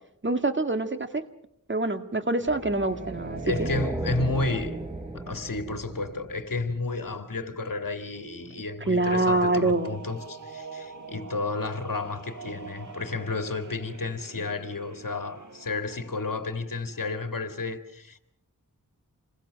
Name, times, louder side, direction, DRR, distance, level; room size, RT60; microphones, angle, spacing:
voice 1, 0.2-1.2 1.7-3.7 8.9-10.0 14.4-14.5, right 2 dB, 35° right, 2.0 m, -25 dB
sound 1, 2.4-6.9 9.0-16.8, right 4 dB, 60° right, 4.3 m, -45 dB
sound 2, 2.5-6.9, right 2 dB, 10° right, 1.0 m, -35 dB
voice 2, 3.4-4.8 5.1-18.2, left 3 dB, 70° left, 2.2 m, -32 dB
28.0 x 21.5 x 6.5 m
wide cardioid pair, 55°, 34 cm